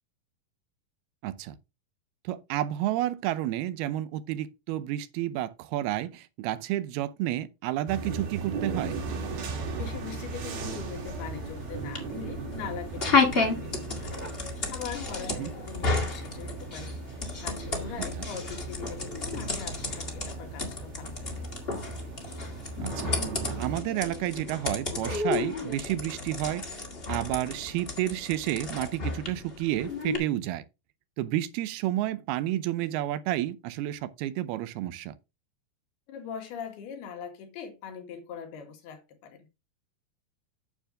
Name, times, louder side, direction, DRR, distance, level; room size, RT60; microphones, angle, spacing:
voice 1, 1.2-1.6 2.2-8.9 15.3-15.5 22.8-23.1 23.6-30.6 31.2-35.1, right 14 dB, 85° right, 2.7 m, -31 dB
sound 1, 7.9-23.8, right 4 dB, 70° right, 4.1 m, -38 dB
voice 2, 9.8-21.5 36.1-39.5, left 7 dB, 85° left, 3.7 m, -42 dB
sound 2, 10.6-30.2, left 3 dB, 30° left, 1.1 m, -32 dB
9.2 x 7.3 x 3.6 m
omnidirectional pair, 4.4 m